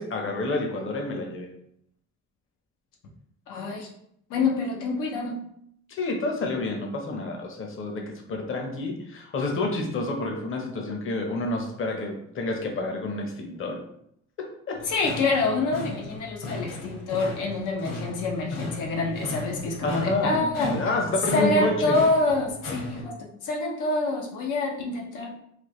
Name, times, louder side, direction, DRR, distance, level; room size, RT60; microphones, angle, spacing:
voice 1, 0.0-1.5 6.0-13.8 14.4-15.1 19.8-22.0, left 2 dB, 45° left, 2 dB, 0.7 m, -29 dB
voice 2, 3.5-3.9 4.3-5.4 14.9-20.8 21.3-23.1 23.4-25.3, left 3 dB, 90° left, -1 dB, 0.7 m, -26 dB
sound 1, 14.7-23.0, left 2 dB, 60° left, 1.2 m, -36 dB
3.3 x 2.1 x 3.0 m, 0.71 s
cardioid pair, 90°, 30 cm